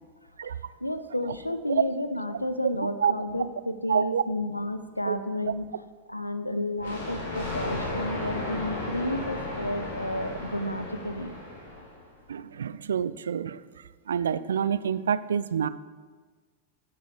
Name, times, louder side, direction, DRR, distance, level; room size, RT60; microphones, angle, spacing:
voice 1, 0.8-5.7 6.1-11.4, left 1 dB, 85° left, 11 dB, 0.6 m, -31 dB
voice 2, 3.9-4.2 5.1-5.2 12.3-13.6 14.1-15.7, right 7 dB, 65° right, 16 dB, 0.4 m, -27 dB
Thunder, 6.8-12.1, left 2 dB, 65° left, 2.7 m, -34 dB
16.0 x 6.2 x 4.7 m, 1.5 s
figure-of-eight pair, 90°, 0 cm